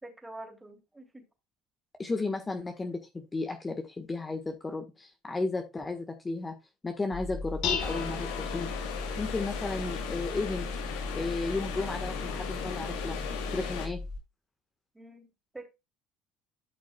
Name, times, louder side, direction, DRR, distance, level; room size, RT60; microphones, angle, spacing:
voice 1, 0.0-1.3 14.9-15.3 15.5-15.7, right 2 dB, 10° right, 3.0 m, -46 dB
voice 2, 2.0-6.5 6.8-8.7 9.2-10.7 11.1-13.2 13.5-14.0, left 3 dB, 20° left, 1.5 m, -34 dB
Dishes pots and pans, 7.1-14.2, left 4 dB, 70° left, 5.3 m, -36 dB
sound 1, 7.8-13.9, left 7 dB, 85° left, 2.7 m, -38 dB
13.0 x 6.1 x 2.3 m
supercardioid pair, 95°, 0 cm